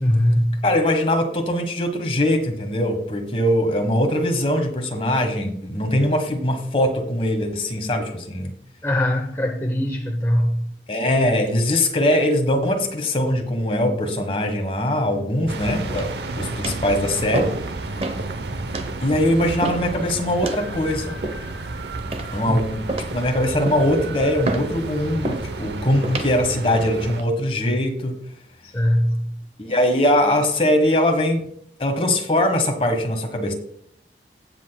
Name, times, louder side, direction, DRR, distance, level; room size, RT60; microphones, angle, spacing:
voice 1, 0.0-0.6 8.8-10.7 22.5-22.6 28.7-29.4, left 1 dB, 15° left, 2 dB, 0.6 m, -21 dB
voice 2, 0.6-8.5 10.9-17.5 19.0-21.2 22.3-28.2 29.6-31.5 31.8-33.5, left 1 dB, 30° left, 5 dB, 1.3 m, -21 dB
sound 1, 15.5-27.2, right 2 dB, 75° right, 0.8 m, -31 dB
sound 2, 15.9-16.2 16.6-16.9 17.3-17.7 18.0-18.2 18.7-18.9 19.6-19.9 20.4-20.7 21.2-21.6 22.1-22.5 22.9-23.2 23.6-23.9 24.4-24.7 25.2-25.5 26.0-26.3 26.9-27.3, right 2 dB, 35° right, 0.8 m, -29 dB
16.0 x 7.8 x 2.3 m, 0.66 s
head